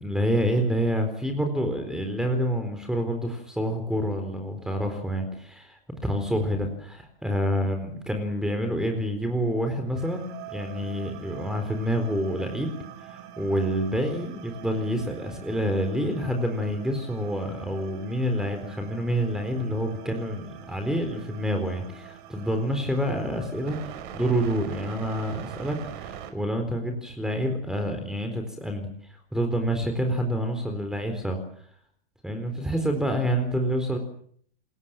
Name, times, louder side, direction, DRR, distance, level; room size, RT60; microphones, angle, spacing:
voice 1, 0.0-12.7 13.0-31.4 32.2-34.0, equal, ahead, 6 dB, 4.1 m, -28 dB
sound 1, 9.9-26.3, right 10 dB, 50° right, 5.9 m, -43 dB
27.5 x 22.0 x 7.5 m, 0.63 s
hypercardioid pair, 140°, 31 cm